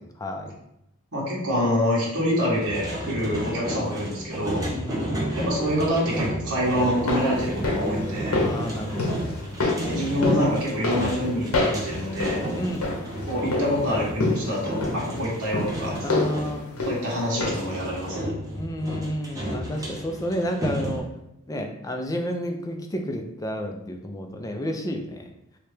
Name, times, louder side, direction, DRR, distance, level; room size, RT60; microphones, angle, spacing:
voice 1, 0.2-0.5 2.1-2.3 4.6-5.3 8.4-10.1 12.5-12.9 15.1-15.3 16.0-16.8 18.5-21.1 21.5-25.3, equal, 15° left, 3 dB, 0.4 m, -31 dB
voice 2, 1.1-4.6 5.4-8.4 9.8-12.4 13.3-15.9 16.8-18.3, equal, 80° right, -6 dB, 1.2 m, -26 dB
sound 1, 2.5-16.6 17.3-21.0, equal, 15° right, 0.7 m, -32 dB
sound 2, 6.8-17.8 18.1-18.2, left 2 dB, 75° left, 0.7 m, -29 dB
3.2 x 2.8 x 3.3 m, 0.83 s
head